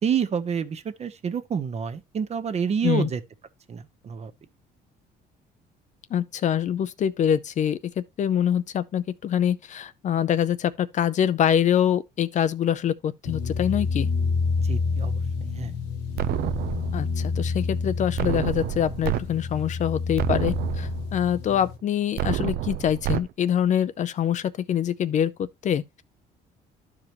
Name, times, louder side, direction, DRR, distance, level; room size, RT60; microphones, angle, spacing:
voice 1, 0.0-3.2 3.7-4.3 14.6-15.7, right 7 dB, 40° right, 0.9 m, -28 dB
voice 2, 6.1-14.1 16.9-26.0, left 9 dB, 45° left, 0.5 m, -25 dB
sound 1, 13.2-21.8, left 4 dB, 85° left, 1.2 m, -28 dB
sound 2, 16.2-17.2 18.2-19.2 19.7-19.8 20.2-21.2 22.2-23.2, right 12 dB, 65° right, 0.6 m, -28 dB
12.0 x 4.9 x 2.9 m
cardioid pair, 110°, 17 cm